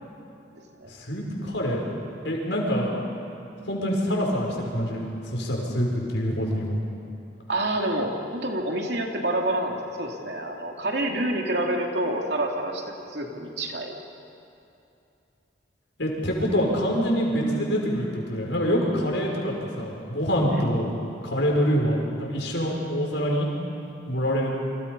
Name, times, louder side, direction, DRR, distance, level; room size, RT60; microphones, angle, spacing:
voice 1, 0.9-1.8 2.2-2.9 3.6-6.7 16.0-20.9 21.2-23.5 24.1-24.5, equal, 85° left, -1 dB, 5.8 m, -25 dB
voice 2, 7.5-14.0 20.5-20.6, right 1 dB, 65° right, 1 dB, 2.9 m, -28 dB
29.0 x 25.5 x 5.5 m, 2.7 s
head